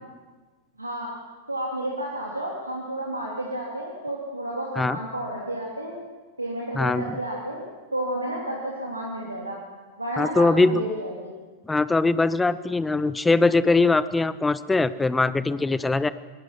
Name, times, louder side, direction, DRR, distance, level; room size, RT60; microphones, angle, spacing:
voice 1, 0.8-1.1 1.5-6.0 6.4-7.6 7.9-9.6 10.0-11.3, right 1 dB, 85° right, -3 dB, 3.1 m, -31 dB
voice 2, 6.7-7.2 10.2-10.9 11.7-16.1, left 3 dB, 10° left, 16 dB, 0.8 m, -21 dB
24.5 x 20.0 x 6.0 m, 1.3 s
figure-of-eight pair, 90°, 0 cm